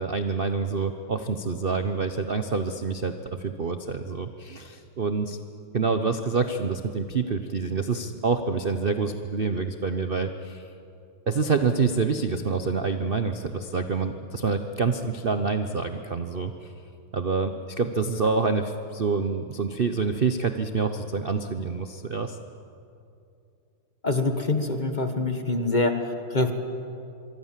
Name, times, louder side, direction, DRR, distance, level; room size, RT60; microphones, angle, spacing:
voice 1, 0.0-5.4 5.7-10.6 11.3-16.7 17.1-22.4, right 4 dB, 80° right, 8 dB, 0.5 m, -27 dB
voice 2, 24.0-26.5, left 2 dB, 25° left, 7 dB, 1.2 m, -25 dB
25.0 x 24.5 x 7.5 m, 2.6 s
omnidirectional pair, 2.4 m